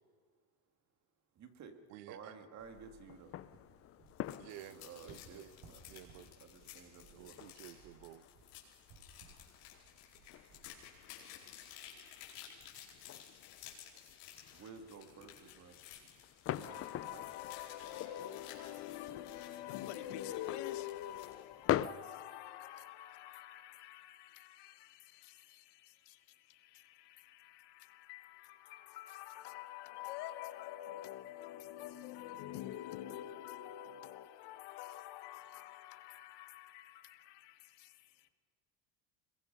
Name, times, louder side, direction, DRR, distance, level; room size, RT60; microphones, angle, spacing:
voice 1, 1.4-3.4 4.6-5.8 6.4-7.5 14.5-15.9 16.6-17.3 21.1-21.3, right 5 dB, 40° right, 2.2 m, -54 dB
voice 2, 1.9-2.3 4.4-4.8 5.1-5.5 5.9-6.3 7.1-8.3, right 15 dB, 75° right, 1.1 m, -52 dB
sound 1, 2.6-21.9, left 12 dB, 35° left, 0.5 m, -45 dB
sound 2, 3.2-11.7, right 4 dB, 55° right, 6.5 m, -63 dB
sound 3, 4.1-21.4, left 10 dB, 85° left, 5.0 m, -55 dB
voice 3, 16.6-38.3, left 13 dB, 65° left, 1.3 m, -47 dB
26.5 x 22.0 x 5.5 m
cardioid pair, 140°, 44 cm